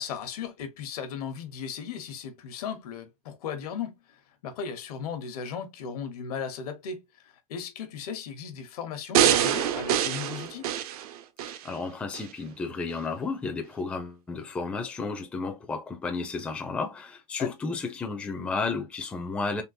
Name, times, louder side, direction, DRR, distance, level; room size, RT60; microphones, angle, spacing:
voice 1, 0.0-10.7 17.4-17.5, left 6 dB, 80° left, 1.0 m, -36 dB
sound 1, 9.1-11.6 12.1-12.2, right 10 dB, 70° right, 0.6 m, -25 dB
voice 2, 11.6-19.6, left 4 dB, 5° left, 0.4 m, -32 dB
3.7 x 2.4 x 2.7 m
supercardioid pair, 165°, 19 cm